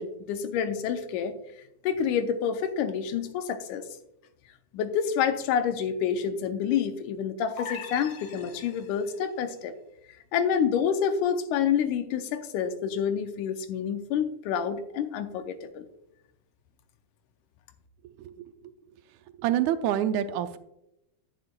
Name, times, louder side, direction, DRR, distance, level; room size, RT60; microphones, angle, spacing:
voice 1, 0.0-1.3 1.8-3.8 4.7-9.7 10.3-15.9, left 7 dB, 85° left, 8 dB, 2.2 m, -28 dB
sound 1, 7.6-9.2, left 6 dB, 60° left, 1.5 m, -41 dB
voice 2, 18.0-18.7 19.4-20.6, right 10 dB, 80° right, 11 dB, 1.9 m, -28 dB
11.0 x 9.5 x 2.2 m, 0.83 s
omnidirectional pair, 3.5 m